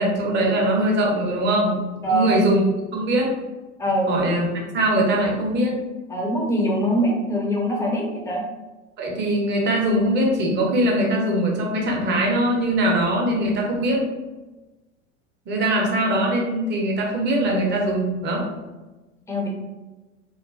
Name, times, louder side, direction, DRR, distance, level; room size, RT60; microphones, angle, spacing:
voice 1, 0.0-2.7 2.9-3.3 4.1-5.8 9.0-14.0 15.5-18.5, right 1 dB, 30° right, -1 dB, 0.7 m, -21 dB
voice 2, 2.0-2.4 3.8-4.3 6.1-8.4 15.8-15.9 19.3-19.5, equal, 10° left, -2 dB, 0.5 m, -23 dB
3.0 x 2.1 x 2.3 m, 1.2 s
figure-of-eight pair, 85°, 39 cm